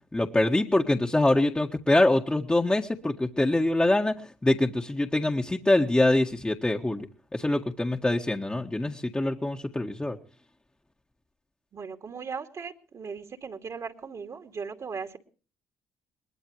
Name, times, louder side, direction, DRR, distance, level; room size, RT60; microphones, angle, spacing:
voice 1, 0.1-4.2 4.4-7.1 7.3-10.2, left 1 dB, 15° left, 1 dB, 1.7 m, -24 dB
voice 2, 11.7-15.2, right 5 dB, 45° right, 5 dB, 2.5 m, -38 dB
22.0 x 20.5 x 3.2 m, 0.39 s
hypercardioid pair, 55°, 7 cm